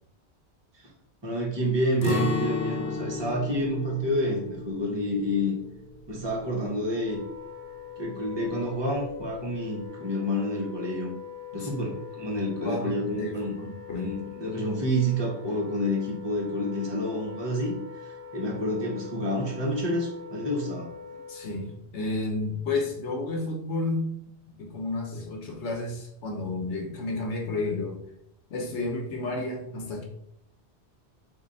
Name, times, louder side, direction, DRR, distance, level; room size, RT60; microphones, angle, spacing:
voice 1, 1.2-5.6 6.1-7.2 8.0-11.1 11.5-13.6 13.9-20.9, equal, 25° right, -3 dB, 1.0 m, -29 dB
Acoustic guitar, 2.0-7.9 8.2-8.4 8.9-9.3, left 4 dB, 55° left, 0.7 m, -35 dB
Wind instrument woodwind instrument, 6.9-21.8, left 7 dB, 35° left, 1.2 m, -43 dB
voice 2, 11.5-11.9 12.2-14.1 21.3-24.2 24.6-28.0 28.5-30.0, left 2 dB, 85° left, 0 dB, 1.1 m, -32 dB
3.1 x 2.7 x 3.8 m, 0.75 s
omnidirectional pair, 1.1 m